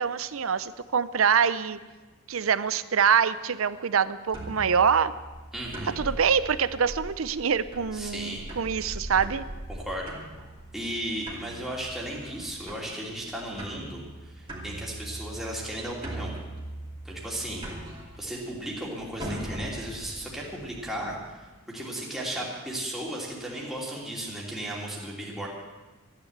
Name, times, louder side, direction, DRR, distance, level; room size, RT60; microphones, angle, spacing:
voice 1, 0.0-1.8 2.3-5.1 6.0-9.4, right 7 dB, 70° right, 15 dB, 0.6 m, -25 dB
sound 1, 4.3-21.2, right 1 dB, 25° right, 2.6 m, -41 dB
voice 2, 5.5-6.0 7.9-8.4 9.7-10.1 10.7-16.3 17.0-17.7 18.2-25.5, right 1 dB, ahead, -4 dB, 2.8 m, -35 dB
14.0 x 10.5 x 8.0 m, 1.2 s
head